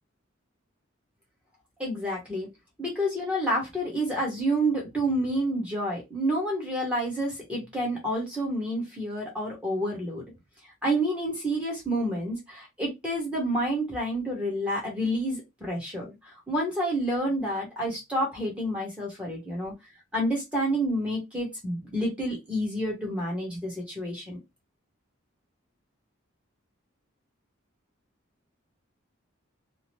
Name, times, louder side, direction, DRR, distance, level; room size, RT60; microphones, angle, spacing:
voice 1, 1.8-2.5 2.8-10.2 10.8-19.7 20.1-24.4, right 1 dB, 5° right, -4 dB, 1.0 m, -29 dB
2.8 x 2.0 x 3.0 m, 0.21 s
head